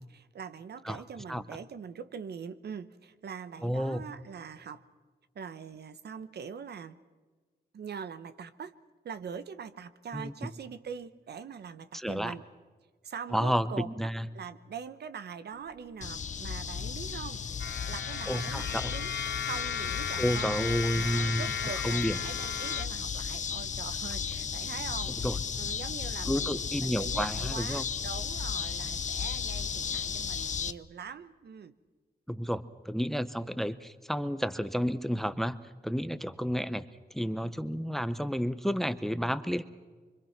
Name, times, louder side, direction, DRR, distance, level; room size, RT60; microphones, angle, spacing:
voice 1, 0.0-4.8 5.3-7.0 7.7-8.8 9.0-12.4 13.0-19.1 19.4-25.3 25.6-31.7, right 6 dB, 80° right, 12 dB, 1.0 m, -43 dB
voice 2, 3.6-4.0 10.1-10.3 11.9-12.3 13.3-14.3 18.3-18.9 20.2-21.5 21.8-22.2 25.2-25.4 26.3-27.9 32.3-35.6 35.8-36.8 37.1-39.7, equal, ahead, 14 dB, 0.8 m, -31 dB
sound 1, 15.5-30.3, right 2 dB, 15° right, 1.9 m, -57 dB
sound 2, 16.0-30.7, left 7 dB, 45° left, 0.6 m, -35 dB
sound 3, 17.6-22.8, left 8 dB, 85° left, 0.8 m, -36 dB
25.5 x 24.0 x 6.0 m, 1.4 s
wide cardioid pair, 130°, 17 cm